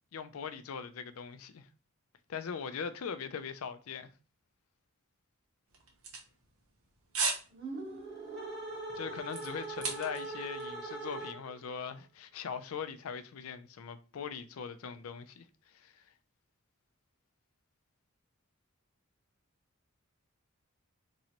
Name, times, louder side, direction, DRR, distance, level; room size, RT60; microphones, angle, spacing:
voice 1, 0.1-1.7 2.3-4.1 8.9-15.4 15.7-15.9, left 6 dB, 85° left, 0.4 m, -41 dB
sound 1, 5.7-6.8 7.1-7.5 7.8-8.1 8.6-10.3 10.6-10.7, right 4 dB, 90° right, 1.0 m, -35 dB
sound 2, 7.5-11.7, right 2 dB, 50° right, 1.5 m, -41 dB
3.9 x 3.1 x 2.9 m
head